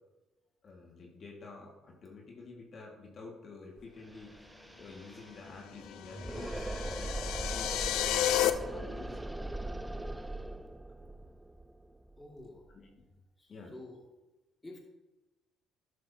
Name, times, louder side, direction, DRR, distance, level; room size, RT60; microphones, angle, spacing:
voice 1, 0.6-4.5 4.8-6.7 7.0-7.1 7.4-9.2 12.7-12.9 13.5-13.7, left 3 dB, 50° left, -1 dB, 1.9 m, -49 dB
sound 1, 3.8-3.9 4.1-12.9, right 1 dB, 10° right, 0.4 m, -40 dB
sound 2, 5.9-8.5, left 12 dB, 80° left, 0.5 m, -31 dB
voice 2, 12.2-12.6 13.4-14.0 14.6-14.8, left 2 dB, 15° left, -1 dB, 2.2 m, -49 dB
12.0 x 6.4 x 2.8 m, 1.1 s
supercardioid pair, 75°, 0 cm